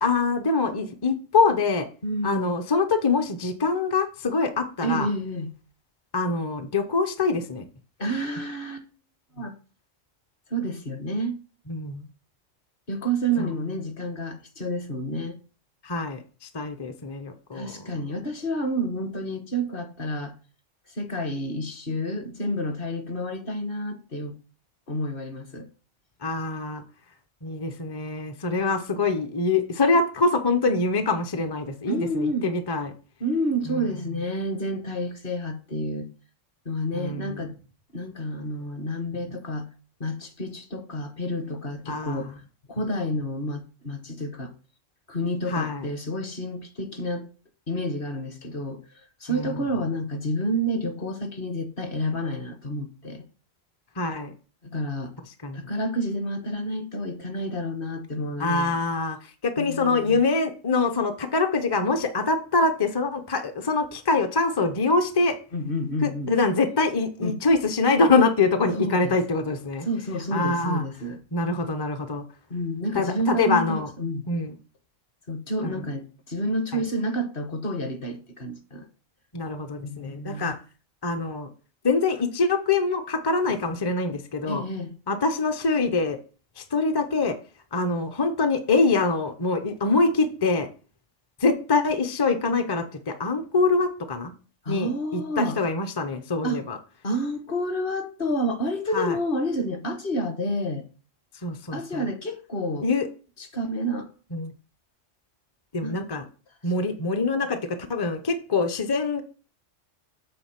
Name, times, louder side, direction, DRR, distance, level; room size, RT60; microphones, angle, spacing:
voice 1, 0.0-1.9 2.2-5.1 6.1-7.6 11.7-12.0 13.4-13.5 15.8-17.8 26.2-26.8 27.4-32.9 33.7-33.8 36.9-37.5 41.9-42.3 45.5-45.9 49.3-49.6 54.0-54.3 55.4-55.6 58.4-59.2 59.4-65.4 66.0-69.9 70.3-70.8 71.3-72.2 72.9-73.9 74.3-74.6 75.6-75.8 76.7-76.8 79.3-80.5 81.0-81.5 81.8-84.6 85.1-86.2 86.6-87.4 87.7-90.7 91.4-94.3 94.7-96.8 98.9-99.2 101.4-102.0 102.8-103.1 104.3-104.5 105.7-106.2 106.6-109.2, left 3 dB, 30° left, 0.5 m, -24 dB
voice 2, 2.0-2.5 4.8-5.5 8.0-8.9 9.4-9.5 10.5-11.3 12.9-15.4 17.5-20.3 20.9-24.4 24.9-25.7 29.0-29.1 31.9-32.5 33.2-36.1 36.6-37.5 37.9-39.7 40.0-42.3 42.7-44.5 45.1-47.3 47.7-48.8 49.2-53.2 54.6-55.1 55.5-58.8 59.6-60.2 65.5-66.3 67.2-67.4 68.7-69.2 69.8-71.2 72.5-74.3 75.3-78.9 79.8-80.5 84.4-84.9 94.6-95.6 96.4-96.6 97.0-100.8 101.7-102.9 103.5-104.1 105.8-106.0 107.0-107.1, equal, 45° left, 1.1 m, -29 dB
7.9 x 3.7 x 5.8 m
omnidirectional pair, 1.3 m